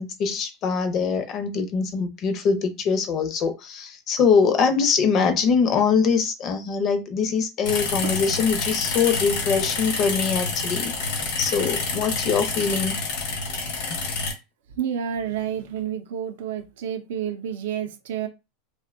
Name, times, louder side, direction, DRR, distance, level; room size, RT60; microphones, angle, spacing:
voice 1, 0.0-13.0, left 5 dB, 40° left, 0.5 m, -23 dB
sound 1, 7.6-14.3, left 4 dB, 75° left, 0.9 m, -28 dB
voice 2, 14.8-18.3, right 9 dB, 85° right, 0.4 m, -29 dB
2.5 x 2.1 x 2.4 m
supercardioid pair, 135°, 0 cm